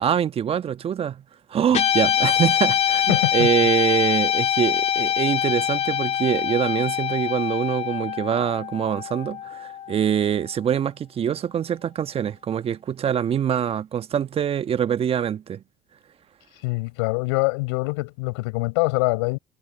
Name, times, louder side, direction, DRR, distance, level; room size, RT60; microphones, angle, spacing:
voice 1, 0.0-1.2 1.5-15.6, right 9 dB, 45° right, 1.3 m, -24 dB
Guitar, 1.7-10.2, left 9 dB, 50° left, 2.5 m, -24 dB
voice 2, 3.1-3.5 16.6-19.4, left 27 dB, 75° left, 7.4 m, -24 dB
hypercardioid pair, 65°, 14 cm